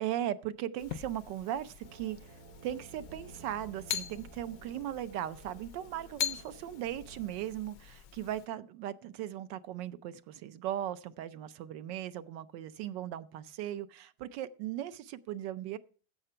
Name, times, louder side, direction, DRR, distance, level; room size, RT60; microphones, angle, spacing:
voice 1, 0.0-15.8, right 12 dB, 75° right, 1.3 m, -38 dB
sound 1, 0.8-8.5, left 10 dB, 65° left, 0.9 m, -42 dB
sound 2, 1.8-7.5, right 4 dB, 50° right, 0.8 m, -55 dB
14.5 x 5.9 x 5.5 m
omnidirectional pair, 2.0 m